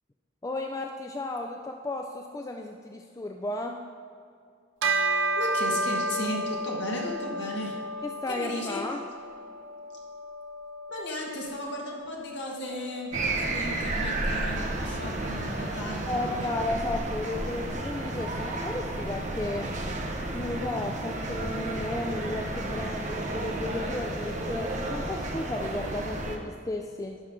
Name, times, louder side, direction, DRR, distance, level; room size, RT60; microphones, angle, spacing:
voice 1, 0.4-3.8 8.0-9.0 16.1-19.8 20.3-27.2, left 2 dB, 15° left, 3 dB, 0.3 m, -34 dB
Bell, 4.8-14.5, right 1 dB, 75° right, 0.6 m, -33 dB
voice 2, 5.4-7.7 8.3-8.8 10.9-16.4, equal, 60° left, -2 dB, 1.6 m, -35 dB
sound 1, 13.1-26.4, right 2 dB, 40° right, 0.8 m, -32 dB
11.5 x 5.7 x 3.7 m, 2.3 s
head